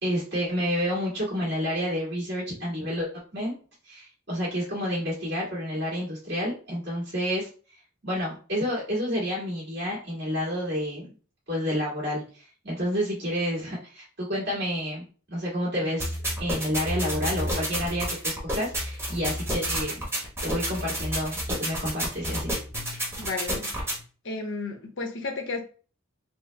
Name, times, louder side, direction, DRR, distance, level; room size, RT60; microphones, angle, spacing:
voice 1, 0.0-3.5 3.9-7.5 8.0-11.1 11.5-15.0 15.3-20.0 20.4-22.5, equal, 55° right, -6 dB, 1.9 m, -29 dB
sound 1, 16.0-24.0, equal, 10° right, 1.0 m, -30 dB
voice 2, 23.2-23.7 24.2-25.6, left 3 dB, 60° left, 3 dB, 0.8 m, -32 dB
4.5 x 2.1 x 3.3 m, 0.38 s
head